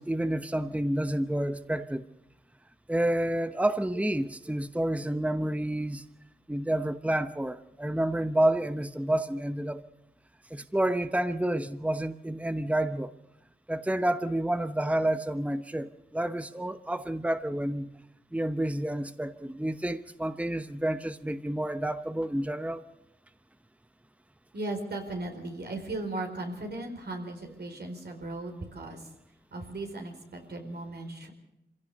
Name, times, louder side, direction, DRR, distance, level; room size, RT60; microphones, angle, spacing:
voice 1, 0.0-2.1 2.9-6.0 6.5-9.8 10.5-13.1 13.7-17.9 18.3-22.8, right 1 dB, 10° right, 1.0 m, -29 dB
voice 2, 24.5-29.1 29.5-31.3, right 2 dB, 75° right, 4.6 m, -37 dB
25.5 x 16.5 x 6.9 m
cardioid pair, 60°, 17 cm